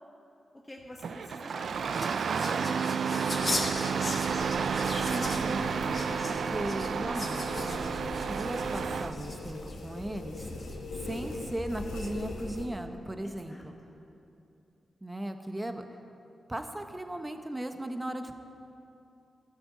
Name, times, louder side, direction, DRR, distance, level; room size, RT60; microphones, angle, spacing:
voice 1, 0.5-3.7 13.2-14.0, left 1 dB, 15° left, -1 dB, 1.4 m, -47 dB
Engine starting, 1.0-9.1, right 6 dB, 70° right, 0.4 m, -31 dB
sound 1, 1.3-9.7 10.3-11.0, left 2 dB, 40° left, 2.1 m, -39 dB
sound 2, 3.2-12.6, left 2 dB, 85° left, 1.8 m, -41 dB
voice 2, 4.9-5.7 6.2-10.5 11.0-13.7 15.0-15.9 16.5-18.4, right 1 dB, 20° right, 6 dB, 1.2 m, -37 dB
13.0 x 6.8 x 8.5 m, 2.7 s
supercardioid pair, 45°, 0 cm